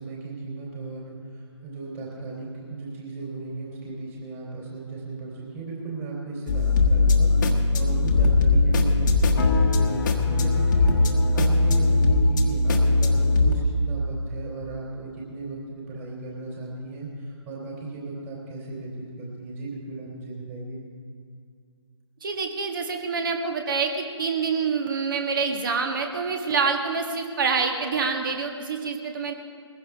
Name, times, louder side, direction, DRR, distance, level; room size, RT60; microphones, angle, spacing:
voice 1, 0.0-20.8, right 3 dB, 25° right, -4 dB, 3.6 m, -36 dB
sound 1, 6.5-13.5, left 3 dB, 40° left, 1.4 m, -20 dB
voice 2, 22.2-29.3, right 5 dB, 45° right, 4 dB, 1.6 m, -26 dB
20.5 x 15.5 x 3.5 m, 2.3 s
figure-of-eight pair, 145°, 16 cm